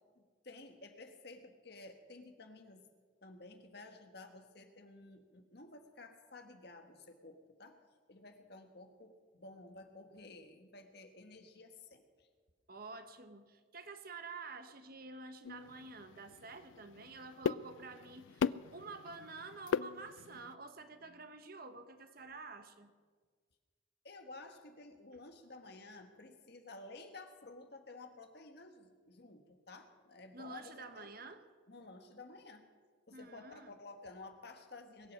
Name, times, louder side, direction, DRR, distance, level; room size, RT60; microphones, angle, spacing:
voice 1, 0.1-2.8 3.2-7.8 8.1-12.3 24.0-31.1 31.7-32.7 33.1-35.1, left 2 dB, 60° left, 6 dB, 1.5 m, -53 dB
voice 2, 12.7-22.9 30.3-31.4 33.1-33.8, right 3 dB, 50° right, 8 dB, 1.1 m, -49 dB
sound 1, 15.4-20.5, left 6 dB, 80° left, 0.3 m, -39 dB
22.0 x 8.5 x 6.4 m, 1.5 s
head